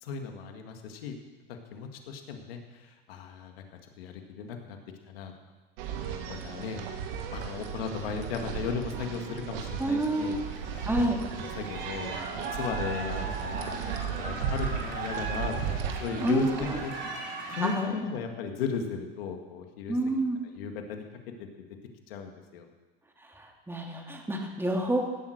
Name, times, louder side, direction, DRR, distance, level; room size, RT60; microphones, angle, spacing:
voice 1, 0.0-1.1 1.5-3.6 4.0-4.8 5.1-5.3 6.3-6.8 7.3-10.4 10.7-11.1 11.4-12.2 12.5-16.9 17.6-20.0 20.4-21.0 21.4-21.5 22.1-22.7, left 6 dB, 80° left, 4 dB, 1.9 m, -36 dB
sound 1, 5.8-16.9, right 7 dB, 75° right, 1.9 m, -36 dB
sound 2, 9.7-17.7, right 3 dB, 40° right, 5.2 m, -39 dB
voice 2, 9.8-10.4 10.9-11.2 16.2-16.6 17.5-18.0 19.9-20.4 23.2-25.1, right 1 dB, 10° right, 1 dB, 2.5 m, -28 dB
17.0 x 7.7 x 6.5 m, 1.2 s
hypercardioid pair, 100°, 29 cm